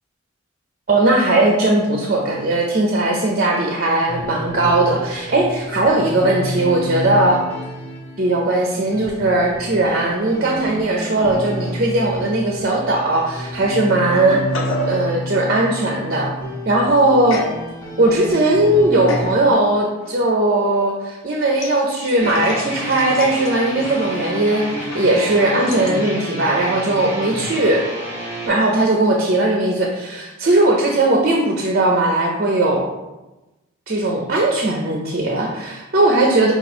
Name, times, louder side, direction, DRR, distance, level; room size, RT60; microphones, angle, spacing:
voice 1, 0.9-7.4 8.2-14.4 14.8-16.3 16.7-17.4 18.0-27.8 28.4-32.9 33.9-36.5, right 2 dB, 45° right, 0 dB, 0.5 m, -18 dB
sound 1, 4.1-19.3, equal, 10° left, 0.7 m, -30 dB
sound 2, 11.2-11.9 12.2-12.3 13.2-13.3 13.9-15.0 17.3-17.6 18.1-18.4 19.1-19.4 20.0-20.1 21.5-26.0, left 1 dB, 70° left, 0.6 m, -31 dB
sound 3, 22.2-28.5, equal, 10° right, 1.5 m, -30 dB
5.3 x 2.4 x 4.2 m, 1.0 s
head